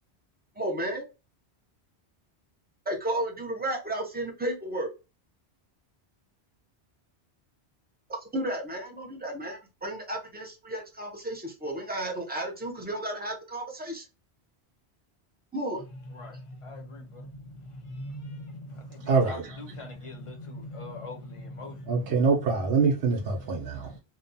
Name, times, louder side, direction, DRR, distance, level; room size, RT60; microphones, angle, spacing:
voice 1, 0.6-1.0 2.9-4.9 8.3-14.0 15.5-15.8, right 1 dB, 10° right, 0.5 m, -33 dB
voice 2, 16.1-22.3 23.4-24.0, left 1 dB, 35° left, 0.7 m, -41 dB
voice 3, 19.1-19.6 21.9-23.9, right 5 dB, 75° right, 0.9 m, -25 dB
2.7 x 2.2 x 2.6 m
omnidirectional pair, 1.1 m